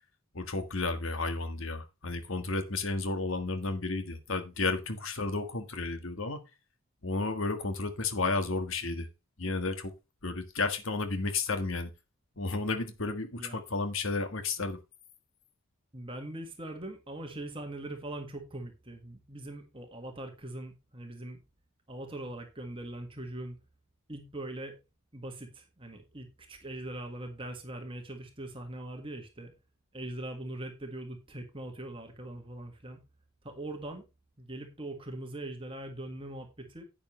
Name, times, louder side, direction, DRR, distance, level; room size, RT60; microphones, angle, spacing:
voice 1, 0.3-6.4 7.0-9.1 9.4-9.9 10.2-11.9 12.4-14.8, left 3 dB, 65° left, 1.6 m, -32 dB
voice 2, 15.9-21.4 21.9-23.6 24.1-24.8 25.1-29.5 29.9-33.0 33.4-34.0 34.4-36.8, right 1 dB, 25° right, 1.7 m, -41 dB
11.0 x 8.8 x 3.2 m
head